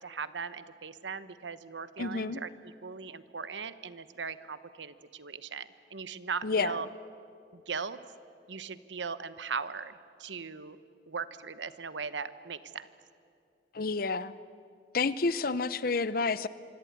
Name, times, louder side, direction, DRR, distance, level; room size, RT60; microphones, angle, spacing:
voice 1, 0.0-6.9 7.5-8.0 8.5-9.9 10.2-10.8 11.1-12.9, right 5 dB, 80° right, 13 dB, 1.1 m, -39 dB
voice 2, 2.0-2.4 6.4-6.7 13.7-14.3 14.9-16.5, left 4 dB, 50° left, 16 dB, 0.8 m, -29 dB
25.5 x 25.0 x 9.4 m, 2.4 s
head